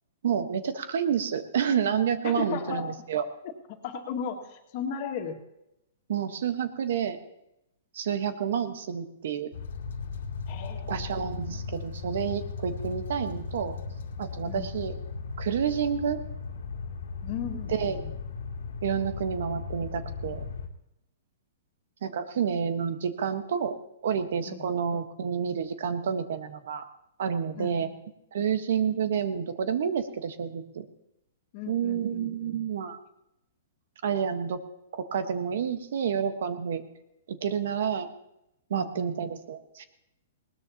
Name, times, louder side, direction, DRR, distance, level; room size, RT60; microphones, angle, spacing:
voice 1, 0.2-3.2 6.1-7.2 7.9-9.5 10.9-13.8 14.2-14.9 15.4-16.2 17.7-18.0 18.8-20.4 22.0-23.7 24.0-26.8 27.2-27.9 28.3-30.8 31.7-33.0 34.0-34.6 34.9-36.8 37.3-38.1 38.7-39.8, right 7 dB, 65° right, 9 dB, 1.3 m, -29 dB
voice 2, 2.2-2.8 3.7-5.4 10.5-11.0 11.5-11.8 14.4-14.7 17.2-18.1 24.5-24.7 27.6-27.9 31.5-32.7 38.7-39.1, left 7 dB, 40° left, 3 dB, 2.1 m, -36 dB
sound 1, 9.5-20.7, left 5 dB, 85° left, 2.3 m, -37 dB
20.0 x 19.5 x 3.0 m, 0.86 s
hypercardioid pair, 160°, 0 cm